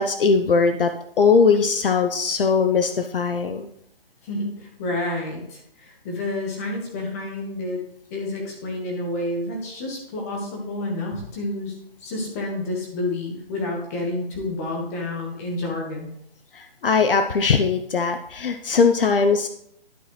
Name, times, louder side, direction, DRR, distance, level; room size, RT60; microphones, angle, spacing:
voice 1, 0.0-3.7 16.5-19.5, left 5 dB, 65° left, 7 dB, 0.8 m, -20 dB
voice 2, 4.2-7.8 8.1-16.1, left 2 dB, 15° left, 0 dB, 1.3 m, -29 dB
11.5 x 5.7 x 3.2 m, 0.73 s
hypercardioid pair, 170°, 30 cm